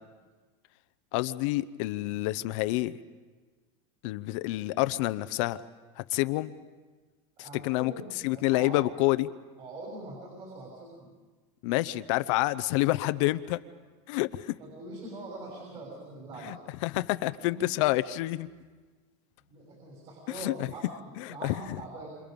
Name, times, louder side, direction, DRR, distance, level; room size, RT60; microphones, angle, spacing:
voice 1, 1.1-2.9 4.0-5.6 6.1-6.5 7.4-7.9 8.2-9.3 11.6-13.6 14.1-14.5 16.4-16.6 16.8-18.5 20.4-20.7 21.2-21.5, left 18 dB, 60° left, 13 dB, 0.8 m, -28 dB
voice 2, 7.4-8.8 9.6-11.1 14.6-16.6 17.5-17.7 19.4-22.1, right 2 dB, 35° right, -3 dB, 6.7 m, -43 dB
28.5 x 27.5 x 5.3 m, 1.4 s
supercardioid pair, 155°, 19 cm